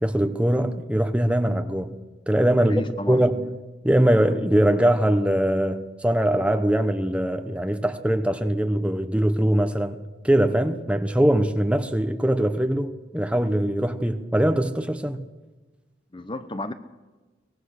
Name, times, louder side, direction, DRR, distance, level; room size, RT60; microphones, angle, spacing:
voice 1, 0.0-1.9 2.3-2.8 3.1-3.5 3.8-10.0 10.2-15.3, right 1 dB, 5° right, 1.1 m, -22 dB
voice 2, 2.6-3.2 16.1-16.7, left 1 dB, 25° left, 0.9 m, -32 dB
23.5 x 19.5 x 6.6 m
head